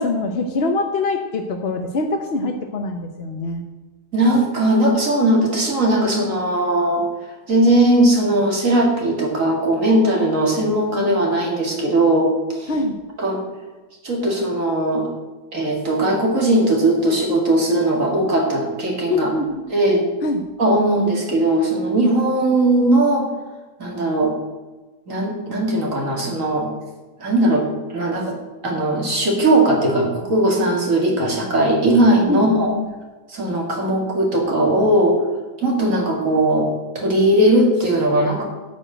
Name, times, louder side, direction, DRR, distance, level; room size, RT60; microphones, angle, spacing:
voice 1, 0.0-3.6 12.7-13.0 19.1-19.6 20.2-20.4 28.1-28.2 32.3-32.9, left 3 dB, 50° left, 5 dB, 0.8 m, -23 dB
voice 2, 4.1-7.0 7.5-12.7 13.2-13.4 14.0-15.1 15.5-19.3 19.7-20.0 20.6-23.3 23.8-24.3 25.1-26.7 27.2-27.6 27.9-28.3 28.6-32.7 33.3-35.2 35.6-36.7 36.9-38.4, right 1 dB, 45° right, 0 dB, 2.7 m, -18 dB
12.5 x 5.0 x 8.8 m, 1.2 s
omnidirectional pair, 1.9 m